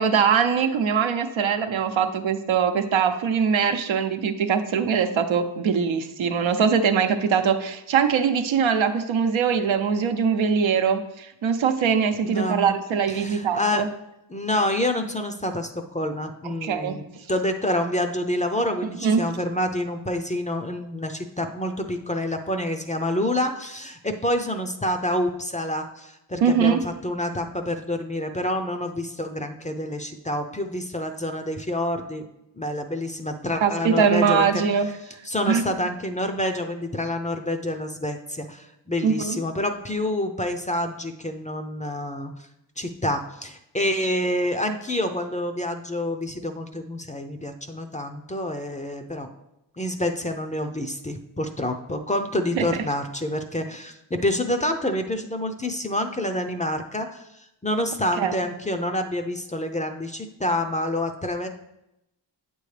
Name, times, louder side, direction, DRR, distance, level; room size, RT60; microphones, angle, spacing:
voice 1, 0.0-13.9 16.4-17.2 19.0-19.3 26.4-26.9 33.6-34.9 35.5-35.6 39.0-39.4 52.6-52.7 58.2-58.4, right 6 dB, 70° right, 7 dB, 0.8 m, -22 dB
voice 2, 12.2-12.7 13.1-13.8 14.3-17.0 17.3-32.2 32.6-34.6 35.2-42.3 42.8-49.3 49.8-57.2 57.6-61.5, left 1 dB, 15° left, 6 dB, 0.6 m, -27 dB
8.6 x 7.0 x 3.3 m, 0.87 s
cardioid pair, 90°, 48 cm